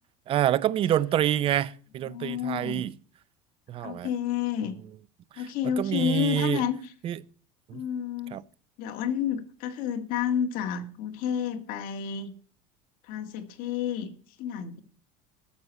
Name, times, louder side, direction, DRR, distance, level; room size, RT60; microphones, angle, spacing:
voice 1, 0.3-2.9 3.7-4.1 5.4-6.7 7.0-7.2 7.7-7.8 8.3-8.4, right 11 dB, 30° right, 0.6 m, -27 dB
voice 2, 2.1-2.8 3.8-4.8 5.4-6.8 7.7-8.4 8.8-12.3 13.1-14.1 14.4-14.8, left 9 dB, 55° left, 1.9 m, -30 dB
12.5 x 6.8 x 8.4 m
cardioid pair, 150°, 17 cm